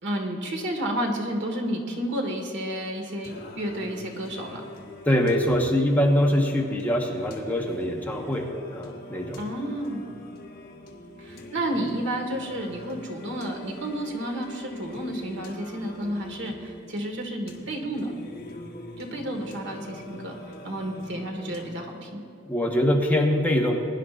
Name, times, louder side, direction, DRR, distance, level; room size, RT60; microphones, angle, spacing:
voice 1, 0.0-4.6 9.4-10.0 11.2-18.1 19.0-22.2, right 1 dB, 65° right, 2 dB, 1.7 m, -31 dB
Singing, 3.2-22.2, left 1 dB, 55° left, 1.4 m, -43 dB
voice 2, 5.0-9.4 22.4-23.9, equal, 10° left, -1 dB, 1.2 m, -23 dB
21.0 x 10.5 x 2.5 m, 2.7 s
head